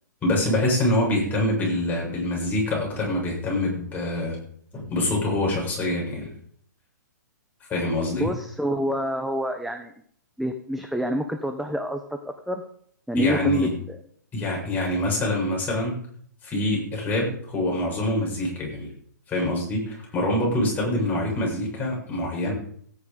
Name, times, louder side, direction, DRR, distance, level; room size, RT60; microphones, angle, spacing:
voice 1, 0.2-4.4 4.7-6.3 7.7-8.3 13.1-13.7 14.3-16.0 16.4-18.9 19.3-22.5, left 1 dB, 15° left, -3 dB, 7.4 m, -25 dB
voice 2, 8.1-9.9 10.4-12.6 13.1-14.0, equal, ahead, 5 dB, 1.1 m, -27 dB
16.0 x 10.0 x 5.3 m, 0.62 s
figure-of-eight pair, 125°, 10 cm